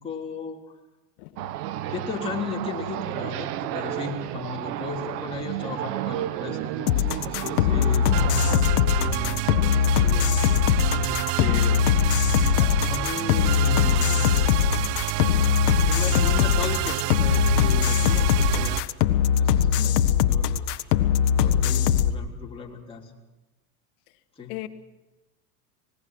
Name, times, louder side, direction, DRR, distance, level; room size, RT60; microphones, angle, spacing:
voice 1, 0.0-0.6 1.9-8.1 8.3-10.3 11.1-11.8 12.5-14.2 15.8-20.6 21.3-23.1 24.4-24.6, left 5 dB, 10° left, -3 dB, 3.7 m, -36 dB
voice 2, 1.2-1.5 19.8-20.0 24.5-24.7, left 18 dB, 65° left, 8 dB, 1.8 m, -37 dB
sound 1, 1.4-8.6, right 12 dB, 75° right, 1.1 m, -32 dB
sound 2, 6.9-22.1, left 9 dB, 90° left, 1.4 m, -21 dB
sound 3, 8.1-18.8, right 15 dB, 50° right, 0.7 m, -29 dB
25.5 x 19.5 x 6.3 m, 1.1 s
supercardioid pair, 130°, 47 cm